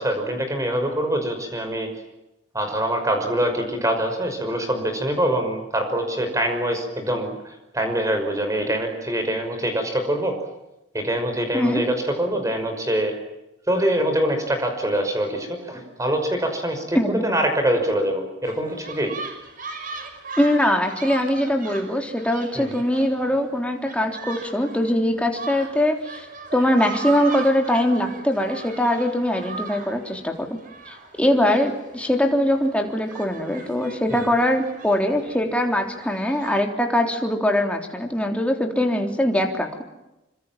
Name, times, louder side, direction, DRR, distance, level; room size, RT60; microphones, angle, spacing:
voice 1, 0.0-1.9 2.5-10.4 10.9-13.1 13.7-19.1 22.6-22.8 34.2-34.3, right 1 dB, 15° right, 5 dB, 5.8 m, -24 dB
sound 1, 18.4-36.6, right 4 dB, 45° right, 6.0 m, -39 dB
voice 2, 20.4-26.3 26.5-30.6 30.9-39.8, left 1 dB, 5° left, 3 dB, 3.6 m, -22 dB
27.0 x 25.5 x 7.5 m, 0.94 s
head